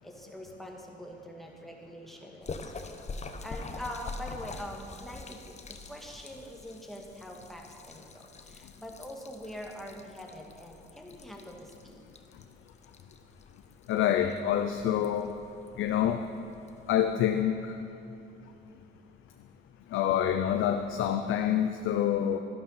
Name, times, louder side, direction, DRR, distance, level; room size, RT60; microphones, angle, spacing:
voice 1, 0.0-5.6 5.9-12.1, equal, ahead, 0 dB, 2.0 m, -44 dB
Splash splatter, 2.4-17.4, left 3 dB, 35° left, 0.9 m, -46 dB
voice 2, 13.9-15.3 15.8-16.2 16.9-17.7 19.9-22.4, left 10 dB, 85° left, 6 dB, 0.6 m, -27 dB
12.5 x 11.5 x 5.8 m, 2.7 s
cardioid pair, 90°, 20 cm